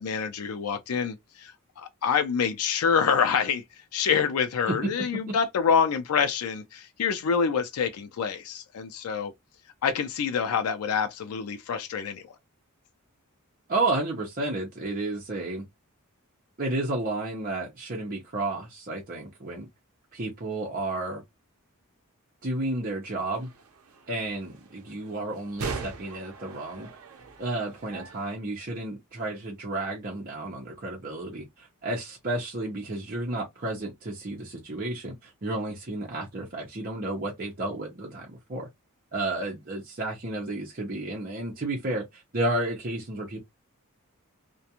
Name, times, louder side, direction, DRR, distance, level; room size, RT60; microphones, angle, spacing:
voice 1, 0.0-3.6 3.9-9.3 9.8-12.4, left 6 dB, 85° left, 0.4 m, -26 dB
voice 2, 13.7-15.6 16.6-19.7 20.1-21.2 22.4-23.5 24.1-26.9 27.4-38.7 39.1-43.4, right 2 dB, 40° right, 0.7 m, -32 dB
sound 1, 23.3-28.3, right 4 dB, 85° right, 0.6 m, -41 dB
2.4 x 2.2 x 2.8 m
head